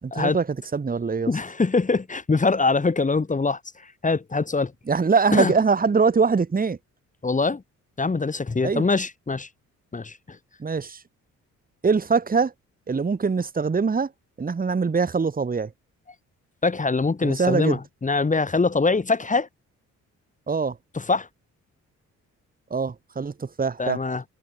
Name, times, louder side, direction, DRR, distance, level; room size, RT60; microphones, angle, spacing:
voice 1, 0.0-0.5 0.7-1.3 4.9-6.8 8.6-8.9 10.6-11.0 11.8-12.5 12.9-14.1 14.4-15.7 17.2-17.8 20.5-20.8 22.7-24.0, right 5 dB, 30° right, 2.5 m, -23 dB
voice 2, 1.3-3.6 4.0-4.7 5.3-5.5 7.2-7.6 8.0-9.5 9.9-10.2 16.6-19.5 20.9-21.3 23.8-24.2, left 4 dB, 25° left, 3.6 m, -23 dB
cardioid pair, 90°, 30 cm